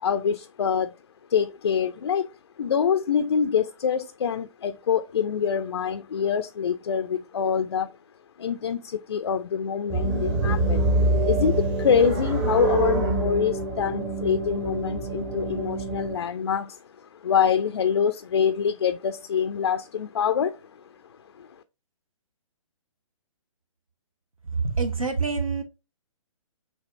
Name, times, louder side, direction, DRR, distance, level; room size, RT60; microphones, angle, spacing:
voice 1, 0.0-1.0 1.3-7.9 8.4-10.9 11.2-20.7 21.3-21.6, left 7 dB, 55° left, 0.4 m, -25 dB
sound 1, 9.9-16.2, right 2 dB, 20° right, 0.9 m, -25 dB
voice 2, 24.5-25.6, right 4 dB, 80° right, 0.8 m, -26 dB
6.1 x 2.5 x 3.1 m
figure-of-eight pair, 130°, 17 cm